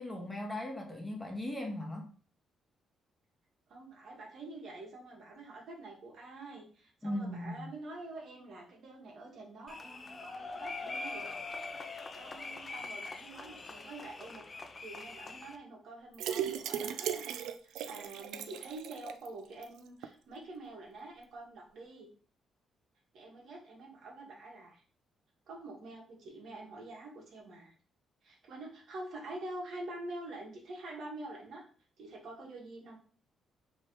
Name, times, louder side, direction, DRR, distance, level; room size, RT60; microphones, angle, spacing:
voice 1, 0.0-2.1 7.0-7.7, left 1 dB, 15° left, 1 dB, 1.2 m, -38 dB
voice 2, 3.7-11.2 11.9-14.4 14.8-22.1 23.1-24.8 25.5-27.7 28.2-31.6 32.0-33.0, right 2 dB, 65° right, -1 dB, 1.5 m, -47 dB
sound 1, 9.7-15.6, left 3 dB, 35° left, 0.5 m, -43 dB
sound 2, 16.1-19.3 19.6-19.7 20.0-20.1, right 9 dB, 85° right, 0.4 m, -37 dB
3.3 x 3.2 x 4.5 m, 0.43 s
cardioid pair, 90°, 0 cm